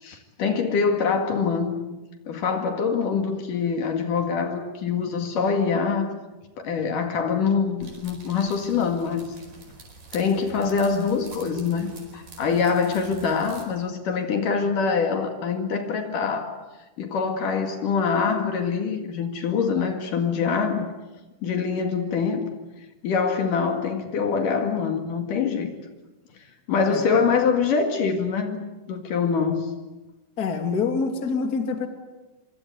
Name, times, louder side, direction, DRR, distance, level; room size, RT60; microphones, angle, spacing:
voice 1, 0.0-1.8 2.3-6.1 6.6-9.3 10.1-16.6 17.0-20.9 21.4-22.5 23.0-25.7 26.7-29.7, left 5 dB, 65° left, 3.5 m, -24 dB
sound 1, 7.8-13.6, right 3 dB, 60° right, 6.3 m, -46 dB
voice 2, 30.4-31.9, left 5 dB, 30° left, 2.5 m, -26 dB
25.5 x 25.0 x 8.1 m
omnidirectional pair, 4.3 m